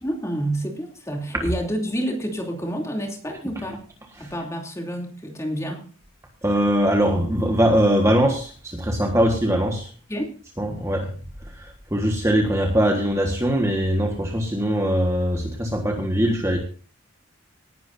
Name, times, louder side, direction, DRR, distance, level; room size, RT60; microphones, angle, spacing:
voice 1, 0.0-3.8 4.2-5.8 10.1-10.3, equal, 15° left, 1 dB, 2.9 m, -28 dB
voice 2, 6.4-9.9 10.6-11.1 11.5-16.6, equal, 15° right, 2 dB, 1.5 m, -21 dB
18.5 x 11.0 x 2.7 m, 0.40 s
head